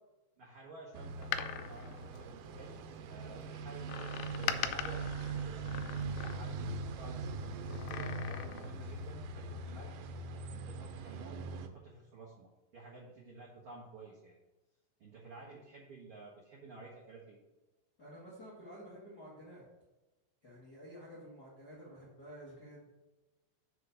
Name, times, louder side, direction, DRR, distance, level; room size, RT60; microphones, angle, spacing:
voice 1, 0.4-2.8 3.1-4.1 4.4-5.6 6.2-10.0 10.5-14.3 15.0-17.4, right 3 dB, 55° right, -6 dB, 1.5 m, -52 dB
sound 1, 0.9-11.7, right 3 dB, 85° right, 2.9 m, -41 dB
Door, 1.1-2.9 3.9-6.8 7.7-8.8 9.1-9.2, left 10 dB, 85° left, 2.7 m, -41 dB
sound 2, 5.5-11.2, right 1 dB, 35° right, 1.8 m, -63 dB
voice 2, 18.0-19.6 20.4-22.9, equal, 55° left, -8 dB, 1.1 m, -51 dB
6.5 x 4.8 x 6.5 m, 1.1 s
omnidirectional pair, 5.0 m